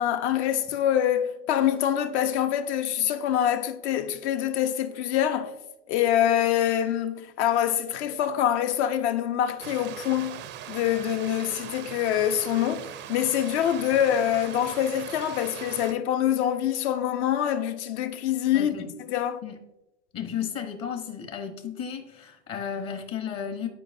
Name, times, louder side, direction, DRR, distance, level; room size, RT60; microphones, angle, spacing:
voice 1, 0.0-5.5 5.9-18.7 19.1-19.4, left 10 dB, 65° left, 0.9 m, -25 dB
Stream, 9.6-15.9, right 10 dB, 30° right, 0.4 m, -40 dB
voice 2, 18.5-18.9 19.4-19.6 20.1-23.7, left 8 dB, 40° left, 1.1 m, -34 dB
11.5 x 4.9 x 2.6 m
hypercardioid pair, 105°, 37 cm